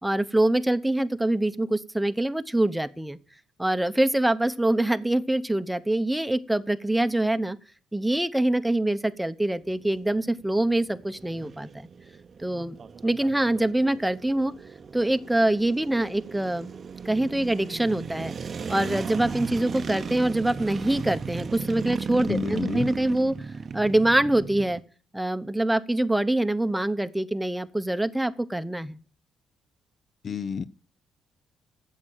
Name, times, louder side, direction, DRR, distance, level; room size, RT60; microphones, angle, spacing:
voice 1, 0.0-3.2 3.6-7.6 7.9-11.9 12.4-12.8 13.0-14.5 14.9-16.7 17.0-18.3 18.7-23.5 23.7-24.8 25.1-29.0, right 1 dB, 5° right, 0.8 m, -25 dB
sound 1, 9.6-24.8, right 5 dB, 45° right, 0.7 m, -36 dB
voice 2, 22.3-22.9 30.2-30.6, left 6 dB, 50° left, 0.6 m, -30 dB
8.7 x 7.5 x 8.9 m
cardioid pair, 90°, 0 cm